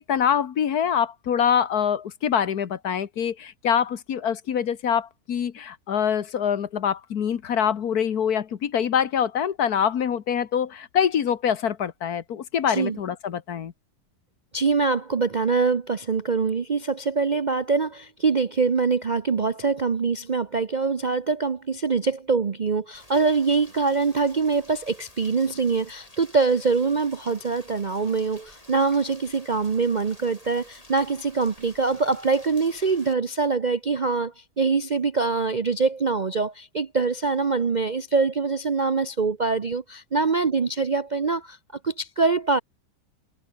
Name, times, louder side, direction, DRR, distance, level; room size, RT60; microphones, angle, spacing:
voice 1, 0.0-13.7, left 8 dB, 65° left, 1.6 m, -25 dB
voice 2, 12.7-13.0 14.5-41.6 41.8-42.6, right 4 dB, 40° right, 0.6 m, -24 dB
Rain, 22.9-33.1, left 1 dB, 20° left, 6.8 m, -51 dB
omnidirectional pair, 1.8 m